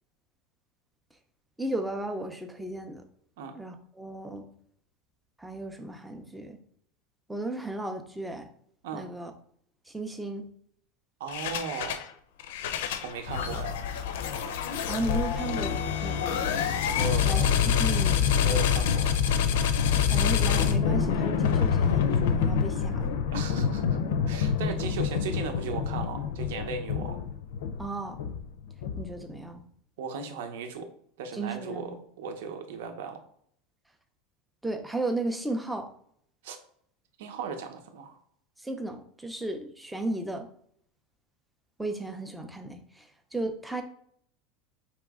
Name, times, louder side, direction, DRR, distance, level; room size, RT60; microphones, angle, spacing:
voice 1, 1.6-3.0 3.6-4.4 5.4-6.6 7.3-8.5 8.9-9.3 9.9-10.4 13.3-13.6 14.9-15.8 16.0-16.5 17.3-18.3 20.1-23.1 24.0-24.2 27.8-28.1 29.0-29.6 31.3-32.0 34.6-35.9 38.6-40.5 41.8-43.1 43.3-43.8, right 2 dB, 5° right, 5 dB, 0.4 m, -34 dB
voice 2, 11.2-12.1 13.0-13.8 16.9-17.5 18.4-19.3 23.3-24.0 24.3-27.2 30.0-30.9 31.2-31.9 32.2-33.2 36.4-36.6 37.2-38.2, right 5 dB, 75° right, 5 dB, 0.8 m, -36 dB
sound 1, 11.3-12.1 12.4-29.3, left 7 dB, 75° left, 0.5 m, -27 dB
4.9 x 3.0 x 3.6 m, 0.65 s
supercardioid pair, 180°, 0 cm